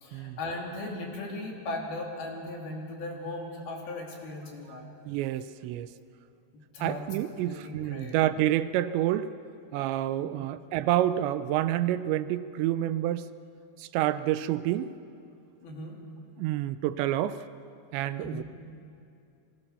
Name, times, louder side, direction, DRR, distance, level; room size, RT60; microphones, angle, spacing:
voice 1, 0.0-4.8 6.7-7.0 7.4-8.2 15.6-16.0 18.2-18.4, left 2 dB, 55° left, -1 dB, 4.7 m, -37 dB
voice 2, 5.1-5.9 6.8-9.3 9.7-13.3 13.8-14.9 16.4-17.4 17.9-18.4, right 13 dB, 80° right, 13 dB, 2.8 m, -28 dB
29.5 x 24.5 x 7.0 m, 2.6 s
omnidirectional pair, 5.5 m